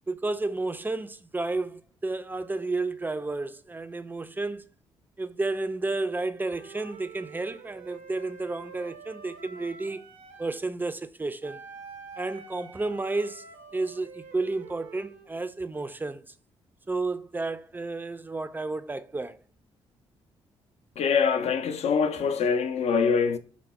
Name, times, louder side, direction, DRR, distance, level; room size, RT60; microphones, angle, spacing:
voice 1, 0.1-4.6 5.2-10.0 10.4-11.6 12.2-13.5 13.7-16.2 16.9-19.4, right 3 dB, 15° right, 0.4 m, -31 dB
Wind instrument woodwind instrument, 6.4-10.6 11.4-15.3, right 5 dB, 80° right, 0.5 m, -47 dB
voice 2, 21.0-23.4, left 6 dB, 60° left, 0.5 m, -24 dB
3.7 x 2.0 x 3.4 m
hypercardioid pair, 45°, 12 cm